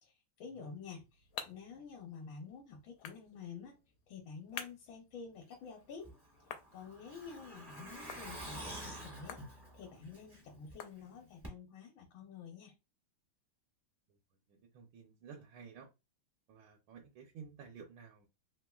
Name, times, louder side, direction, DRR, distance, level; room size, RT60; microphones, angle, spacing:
voice 1, 0.0-3.8 4.1-6.1 6.7-12.7, left 5 dB, 75° left, 1 dB, 1.4 m, -49 dB
sound 1, 0.6-11.5, left 8 dB, 90° left, 1.4 m, -53 dB
Truck, 6.0-10.7 11.0-11.1 11.4-11.5, right 1 dB, 25° right, 0.5 m, -48 dB
voice 2, 14.5-15.9 16.5-18.3, right 6 dB, 80° right, 0 dB, 1.4 m, -53 dB
3.6 x 2.8 x 2.2 m, 0.26 s
omnidirectional pair, 2.2 m